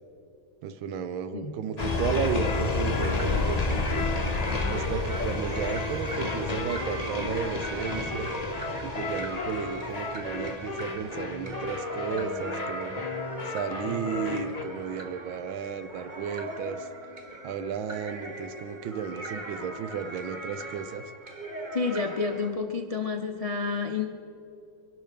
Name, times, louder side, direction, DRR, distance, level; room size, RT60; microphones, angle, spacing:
voice 1, 0.6-4.1 4.7-8.3 8.8-12.9 13.5-16.9 17.4-21.0, right 7 dB, 85° right, 11 dB, 1.5 m, -33 dB
sound 1, 1.8-14.6, left 3 dB, 25° left, 1.0 m, -31 dB
sound 2, 2.9-22.5, right 1 dB, 25° right, 1.2 m, -40 dB
voice 2, 21.7-24.1, left 4 dB, 70° left, 5 dB, 0.3 m, -29 dB
23.0 x 12.0 x 5.2 m, 2.8 s
omnidirectional pair, 2.1 m